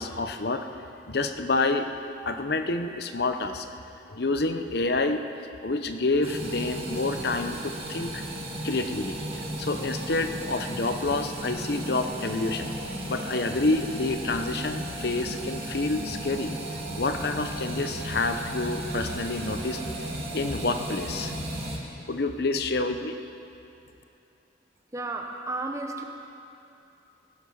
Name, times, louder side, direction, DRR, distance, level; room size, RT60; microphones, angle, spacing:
voice 1, 0.0-1.9 2.3-3.7 4.1-5.2 5.6-8.2 8.6-12.7 13.1-16.5 17.0-19.8 20.3-21.5 22.1-23.2, left 3 dB, 55° left, 7 dB, 0.8 m, -28 dB
sound 1, 6.2-21.8, right 1 dB, 35° right, 1.8 m, -35 dB
sound 2, 12.0-21.3, right 2 dB, 50° right, 1.9 m, -45 dB
voice 2, 24.9-26.0, right 2 dB, 15° right, 3 dB, 0.8 m, -33 dB
18.5 x 11.5 x 5.5 m, 2.8 s
head